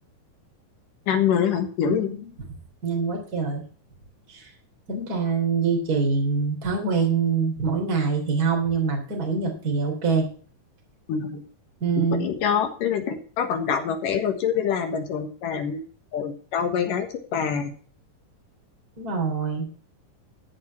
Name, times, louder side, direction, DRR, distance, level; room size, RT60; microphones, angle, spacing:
voice 1, 1.1-2.1 11.1-11.4 12.0-15.8 16.1-17.1 17.3-17.7, left 7 dB, 75° left, 6 dB, 3.1 m, -25 dB
voice 2, 1.9-2.3 2.8-3.6 4.3-4.5 4.9-10.3 11.8-12.3 19.0-19.7, right 5 dB, 25° right, 2 dB, 3.5 m, -25 dB
14.0 x 5.4 x 7.1 m, 0.42 s
omnidirectional pair, 3.9 m